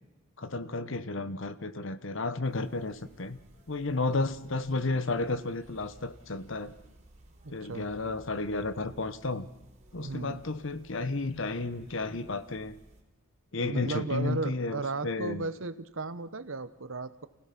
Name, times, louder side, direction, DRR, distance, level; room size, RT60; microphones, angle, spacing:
voice 1, 0.4-3.4 3.7-6.7 7.5-9.5 9.9-12.8 13.5-15.5, left 3 dB, 65° left, 14 dB, 1.0 m, -32 dB
sound 1, 2.4-13.0, right 1 dB, 35° right, 3.7 m, -57 dB
voice 2, 7.4-7.9 10.0-10.4 13.6-17.3, right 3 dB, 70° right, 13 dB, 1.0 m, -35 dB
29.0 x 16.5 x 5.9 m, 1.1 s
head